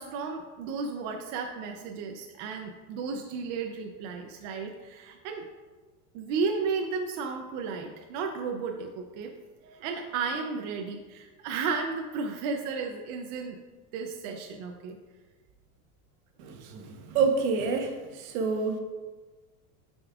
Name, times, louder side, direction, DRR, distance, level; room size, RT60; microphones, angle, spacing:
voice 1, 0.0-5.5 6.1-9.3 9.6-13.6 13.9-15.0, right 5 dB, 50° right, 3 dB, 0.6 m, -33 dB
voice 2, 16.4-17.9 18.2-18.8, right 4 dB, 75° right, 4 dB, 1.1 m, -28 dB
8.3 x 5.3 x 2.4 m, 1.3 s
supercardioid pair, 145°, 43 cm